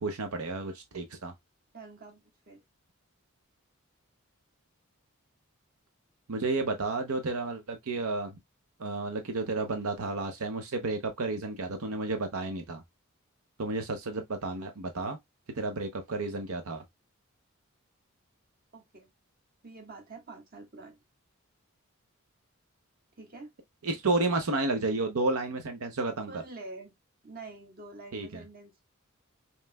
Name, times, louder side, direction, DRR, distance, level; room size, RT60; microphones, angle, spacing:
voice 1, 0.0-1.3 6.3-8.4 8.8-12.8 13.6-15.2 15.6-16.8 23.8-26.3 28.1-28.4, right 3 dB, 90° right, 0.8 m, -31 dB
voice 2, 1.7-2.6 18.7-19.1 19.6-21.0 23.2-23.5 26.3-26.9 27.2-28.8, right 3 dB, 45° right, 1.4 m, -46 dB
5.4 x 3.1 x 2.2 m
head